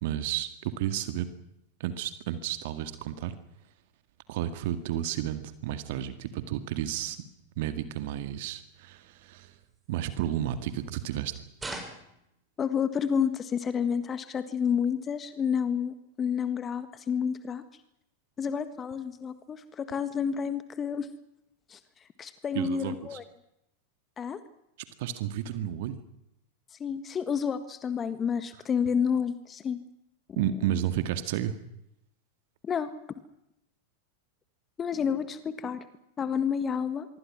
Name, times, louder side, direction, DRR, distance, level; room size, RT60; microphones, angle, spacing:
voice 1, 0.0-1.3 1.8-3.4 4.3-7.2 7.6-9.5 9.9-11.3 22.5-23.2 25.0-26.0 30.4-31.6, right 11 dB, 50° right, 11 dB, 1.9 m, -32 dB
sound 1, 9.5-11.1 11.5-13.1 13.6-14.9 15.3-15.7 16.0-16.1 16.4-16.8 17.3-17.4 17.8-18.3 18.6-19.7, right 2 dB, 10° right, 5.5 m, -47 dB
voice 2, 12.6-17.6 18.4-21.1 21.7-21.8 22.2-23.2 24.2-24.4 26.8-29.8 30.3-30.4 32.6-32.9 34.8-35.8 36.2-37.1, left 7 dB, 20° left, 12 dB, 1.7 m, -30 dB
25.0 x 24.0 x 6.1 m, 0.82 s
figure-of-eight pair, 90°, 0 cm